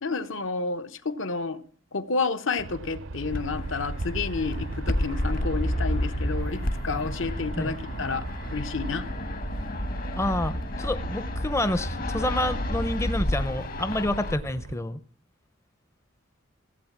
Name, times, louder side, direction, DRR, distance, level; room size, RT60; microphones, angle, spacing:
voice 1, 0.0-1.6 1.9-8.3 8.5-9.1, left 4 dB, 70° left, 10 dB, 1.1 m, -30 dB
Aircraft, 2.6-14.8, right 2 dB, 75° right, 0.7 m, -38 dB
Fixed-wing aircraft airplane, 3.3-14.3, left 1 dB, 45° left, 1.2 m, -31 dB
voice 2, 10.2-15.0, left 1 dB, 15° left, 13 dB, 0.6 m, -28 dB
16.0 x 8.4 x 7.3 m, 0.42 s
head